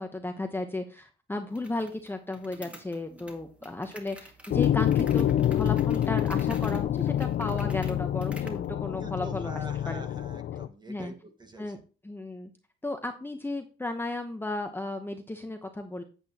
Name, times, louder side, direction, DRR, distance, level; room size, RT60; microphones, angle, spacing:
voice 1, 0.0-10.0 10.9-11.1 11.6-11.8 12.0-12.5 12.8-16.0, left 2 dB, 10° left, 5 dB, 0.9 m, -34 dB
sound 1, 1.6-8.7, equal, 5° right, 2.0 m, -51 dB
sound 2, 4.5-10.7, left 11 dB, 60° left, 0.5 m, -27 dB
voice 2, 9.0-11.8, right 1 dB, 20° right, 6 dB, 1.7 m, -46 dB
8.6 x 8.2 x 2.9 m, 0.35 s
cardioid pair, 90°, 20 cm